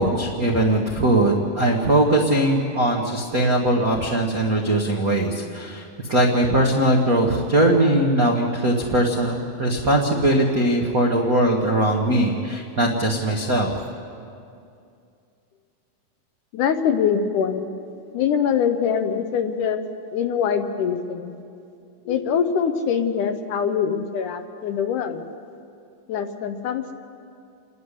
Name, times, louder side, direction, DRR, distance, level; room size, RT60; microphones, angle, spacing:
voice 1, 0.0-13.7, right 1 dB, 60° right, -1 dB, 0.8 m, -20 dB
voice 2, 16.5-17.7 18.1-19.8 20.1-21.3 22.1-25.2 26.1-26.9, left 7 dB, 70° left, 7 dB, 2.2 m, -23 dB
28.5 x 10.5 x 9.8 m, 2.4 s
omnidirectional pair, 4.1 m